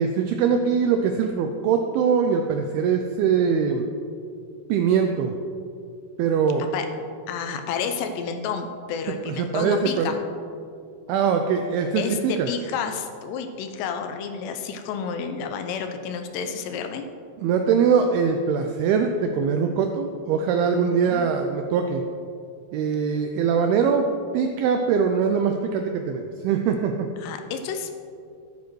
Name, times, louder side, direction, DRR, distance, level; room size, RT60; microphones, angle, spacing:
voice 1, 0.0-3.8 4.7-5.4 6.2-6.6 9.3-10.2 11.1-12.5 17.4-22.0 22.7-24.1 24.3-27.1, right 6 dB, 85° right, 5 dB, 2.2 m, -22 dB
voice 2, 7.3-10.2 12.0-17.1 20.8-21.2 27.2-27.9, left 6 dB, 80° left, 6 dB, 2.6 m, -30 dB
13.5 x 9.5 x 3.1 m, 2.4 s
omnidirectional pair, 5.0 m